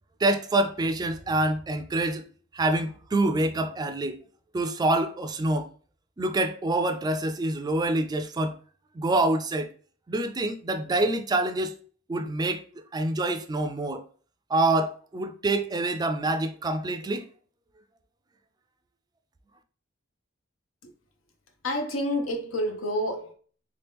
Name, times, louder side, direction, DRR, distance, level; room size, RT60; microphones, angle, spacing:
voice 1, 0.2-2.2 2.5-4.2 4.5-5.7 6.2-8.5 9.0-9.7 10.1-11.7 12.1-12.6 12.9-14.0 14.5-17.2, right 2 dB, 20° right, 0.3 m, -26 dB
voice 2, 21.6-23.3, equal, 90° left, 0.8 m, -29 dB
3.3 x 2.9 x 3.4 m
head